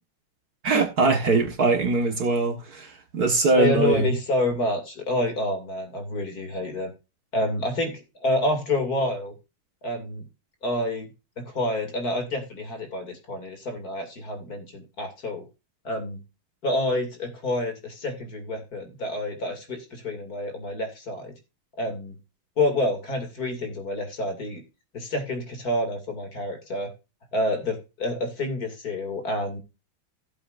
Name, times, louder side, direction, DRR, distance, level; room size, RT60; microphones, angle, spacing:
voice 1, 0.6-4.1, right 3 dB, 50° right, 1.9 m, -22 dB
voice 2, 3.6-6.9 7.3-9.3 9.8-10.2 10.6-11.1 11.4-15.5 15.8-16.2 16.6-21.3 21.8-22.2 22.6-24.6 24.9-26.9 27.3-29.6, left 1 dB, 45° left, 3.0 m, -28 dB
15.5 x 7.9 x 2.5 m
omnidirectional pair, 2.3 m